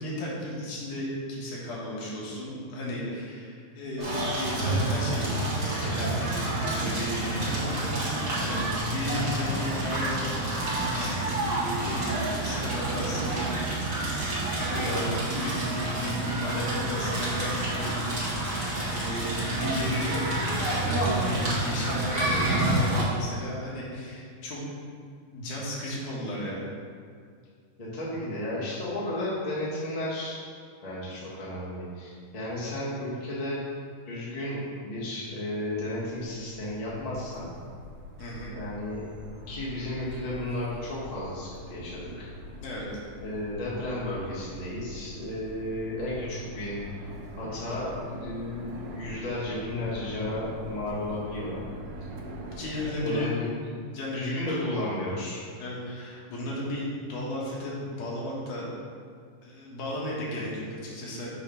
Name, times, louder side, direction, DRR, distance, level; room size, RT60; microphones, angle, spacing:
voice 1, 0.0-5.3 5.8-10.3 10.7-13.5 13.7-13.9 14.7-15.1 15.3-18.5 18.8-20.2 21.2-24.6 25.3-26.6 38.2-38.5 42.6-42.9 52.6-53.3 53.9-54.6 55.6-58.7 59.4-61.3, equal, 70° left, -5 dB, 2.8 m, -34 dB
Crackle, 4.0-23.0, right 1 dB, 35° right, 1.3 m, -28 dB
Piano, 4.0-7.9 8.3-8.7, left 2 dB, 55° right, 2.3 m, -47 dB
voice 2, 27.8-30.4 30.8-33.6 34.0-37.5 38.5-39.0 39.5-42.3 43.2-46.8 47.4-51.6 53.0-53.5 54.1-55.4, left 1 dB, 30° left, -8 dB, 0.6 m, -33 dB
sound 1, 35.7-52.9, equal, 85° right, 2.5 m, -43 dB
7.2 x 3.6 x 5.6 m, 2.2 s
omnidirectional pair, 3.9 m